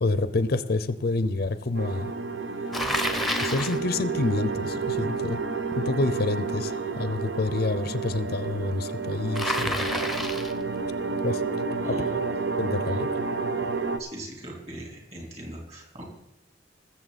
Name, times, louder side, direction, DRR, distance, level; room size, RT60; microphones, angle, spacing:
voice 1, 0.0-2.1 3.4-5.4 5.7-9.8 11.2-11.4 11.8-11.9 12.6-13.1, left 2 dB, 55° left, 13 dB, 0.6 m, -27 dB
sound 1, 1.7-14.0, right 4 dB, 60° right, 0.8 m, -30 dB
Bicycle, 2.7-3.8 9.3-10.6, left 1 dB, ahead, 0.8 m, -29 dB
voice 2, 11.8-12.2 14.0-16.0, right 1 dB, 35° right, -1 dB, 3.5 m, -39 dB
20.5 x 7.3 x 4.1 m, 0.85 s
head